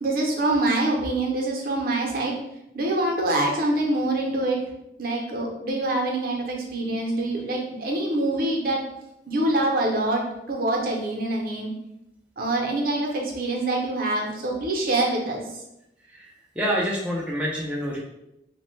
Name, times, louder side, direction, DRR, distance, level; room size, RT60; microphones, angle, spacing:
voice 1, 0.0-2.3 2.7-4.6 5.0-8.8 9.3-10.2 10.5-11.7 12.4-15.4, right 2 dB, 55° right, -1 dB, 0.6 m, -25 dB
voice 2, 16.0-18.0, equal, 5° right, -4 dB, 0.4 m, -27 dB
3.1 x 2.1 x 3.0 m, 0.86 s
head